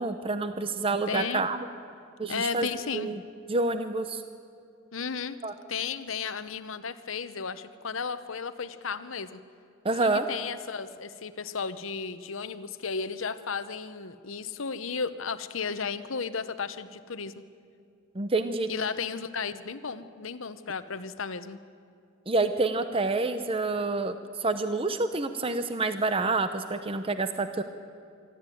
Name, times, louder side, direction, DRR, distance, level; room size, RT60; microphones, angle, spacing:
voice 1, 0.0-1.7 2.2-2.7 2.9-3.2 3.5-4.2 5.4-5.5 9.8-10.2 18.1-18.7 22.3-27.6, right 3 dB, 25° right, 9 dB, 0.7 m, -28 dB
voice 2, 1.1-1.5 2.3-3.1 4.9-5.4 5.7-9.4 10.0-17.3 18.7-21.6, left 5 dB, 75° left, 12 dB, 0.9 m, -34 dB
25.5 x 12.5 x 9.2 m, 2.5 s
head